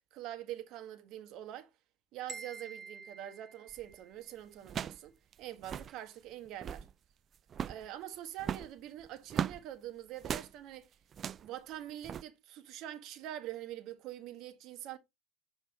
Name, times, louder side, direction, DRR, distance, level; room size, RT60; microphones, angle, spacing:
voice 1, 0.1-1.7 2.1-5.1 5.4-6.9 7.6-10.9 11.4-15.0, right 12 dB, 55° right, 1.5 m, -44 dB
sound 1, 2.3-4.3, right 4 dB, 10° right, 2.8 m, -49 dB
sound 2, 3.7-3.9 4.6-5.1 5.3-5.4 5.6-5.9 6.4-6.9 7.5-7.9 8.4-9.6 10.2-10.5 11.1-11.5 12.0-12.2, right 8 dB, 35° right, 0.4 m, -37 dB
7.2 x 5.6 x 4.1 m
hypercardioid pair, 85°, 0 cm